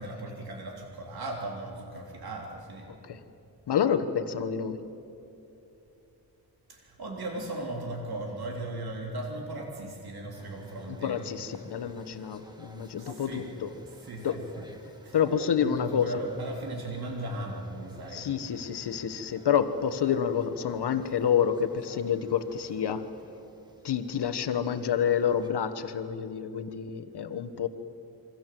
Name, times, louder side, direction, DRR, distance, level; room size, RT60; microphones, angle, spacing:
voice 1, 0.0-2.9 6.7-11.2 13.0-13.5 14.0-14.7 15.0-15.2 15.6-18.3, right 2 dB, 70° right, 0 dB, 3.6 m, -37 dB
voice 2, 3.7-4.8 10.9-13.7 14.2-14.4 15.1-16.1 18.1-23.1 23.8-27.7, left 8 dB, 85° left, 10 dB, 1.4 m, -28 dB
sound 1, 10.3-25.5, equal, 10° right, 2.3 m, -52 dB
28.0 x 24.5 x 7.7 m, 2.9 s
wide cardioid pair, 135°, 39 cm